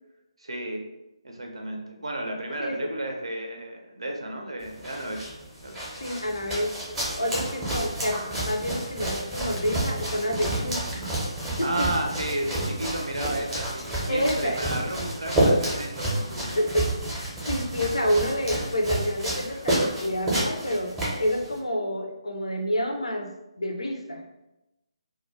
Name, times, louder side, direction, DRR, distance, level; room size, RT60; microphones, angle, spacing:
voice 1, 0.4-0.8 1.2-5.2 5.6-5.9 11.6-16.6, right 1 dB, 70° right, 1 dB, 0.4 m, -33 dB
sound 1, 4.6-21.6, right 1 dB, 5° right, 0.5 m, -30 dB
voice 2, 6.0-6.7 7.2-11.1 11.6-11.9 14.1-14.7 16.5-20.9 21.2-23.3 23.6-24.2, equal, 70° left, 3 dB, 0.4 m, -28 dB
2.2 x 2.1 x 3.1 m, 0.94 s
figure-of-eight pair, 145°, 3 cm